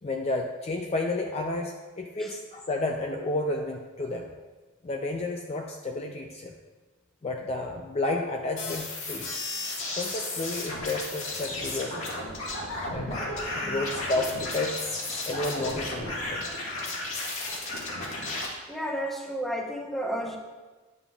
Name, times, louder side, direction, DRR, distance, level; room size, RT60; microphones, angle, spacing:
voice 1, 0.0-4.3 4.8-6.5 7.2-9.3 9.9-12.1 12.9-14.8 15.2-16.5, left 2 dB, 30° left, 2 dB, 0.4 m, -31 dB
sound 1, 8.6-18.5, left 2 dB, 90° left, 1.8 m, -33 dB
voice 2, 18.7-20.4, equal, ahead, 0 dB, 0.8 m, -32 dB
9.8 x 7.0 x 2.4 m, 1.3 s
head